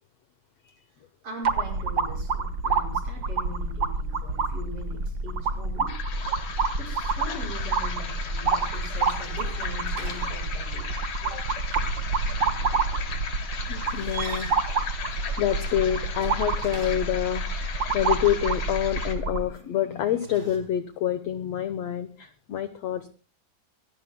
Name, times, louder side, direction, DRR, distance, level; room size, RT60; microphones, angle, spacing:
voice 1, 1.2-6.0 6.8-10.9 11.2-11.5, right 1 dB, 40° right, 1 dB, 6.6 m, -41 dB
sound 1, 1.4-19.5, right 4 dB, 65° right, 1.1 m, -28 dB
sound 2, 5.9-19.1, left 6 dB, 50° left, 3.5 m, -37 dB
sound 3, 8.6-10.9 13.7-17.3 19.9-20.6, right 4 dB, 85° right, 5.7 m, -44 dB
voice 2, 13.7-14.5 15.4-17.5 17.9-23.1, left 10 dB, 70° left, 11 dB, 1.6 m, -27 dB
25.0 x 18.0 x 2.2 m, 0.35 s
omnidirectional pair, 4.1 m